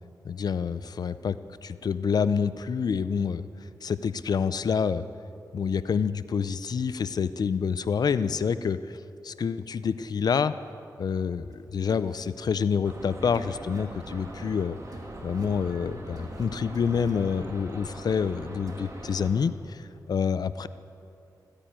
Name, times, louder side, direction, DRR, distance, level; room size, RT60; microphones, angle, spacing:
voice 1, 0.2-1.3 1.6-3.5 3.8-5.1 5.5-9.0 9.2-10.5 11.0-14.8 15.2-20.7, left 6 dB, 65° left, 14 dB, 0.5 m, -27 dB
sound 1, 11.5-11.6 11.9-12.2 13.3-13.8 14.9-15.5 16.2-16.4 16.7-17.1 18.7-18.9, right 2 dB, 60° right, 2.5 m, -50 dB
sound 2, 12.8-19.3, right 1 dB, 45° right, 2.0 m, -41 dB
14.0 x 9.8 x 8.9 m, 2.6 s
wide cardioid pair, 85°, 7 cm